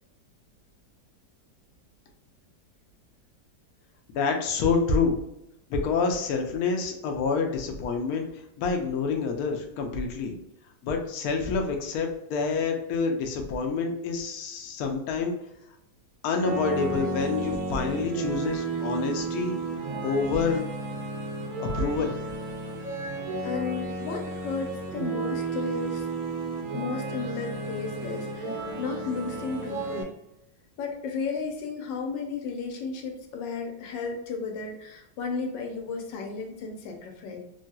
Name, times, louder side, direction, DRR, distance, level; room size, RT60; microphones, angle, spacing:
voice 1, 4.1-5.2 5.7-10.3 10.8-15.3 16.2-19.6 20.0-20.6 21.6-22.2, left 4 dB, 70° left, 3 dB, 0.9 m, -27 dB
sound 1, 16.3-30.0, right 3 dB, 70° right, 1.0 m, -32 dB
voice 2, 23.4-26.1 26.7-30.1 30.8-37.4, left 4 dB, 85° left, 2 dB, 1.3 m, -34 dB
3.1 x 2.8 x 2.2 m, 0.84 s
omnidirectional pair, 2.0 m